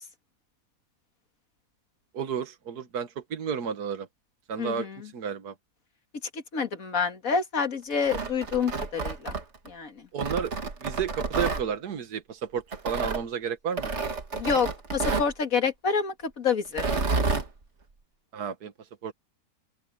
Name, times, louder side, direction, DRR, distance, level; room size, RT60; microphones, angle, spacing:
voice 1, 2.1-4.1 4.5-5.6 10.1-13.9 18.3-19.1, right 7 dB, 75° right, 1.9 m, -32 dB
voice 2, 4.6-5.0 6.3-9.4 9.7-10.1 14.3-16.9, left 6 dB, 60° left, 2.3 m, -28 dB
Tearing, 7.9-9.7 10.2-11.6 12.7-13.2 13.8-15.3 16.7-17.5, right 4 dB, 45° right, 2.2 m, -29 dB
open air
omnidirectional pair, 1.7 m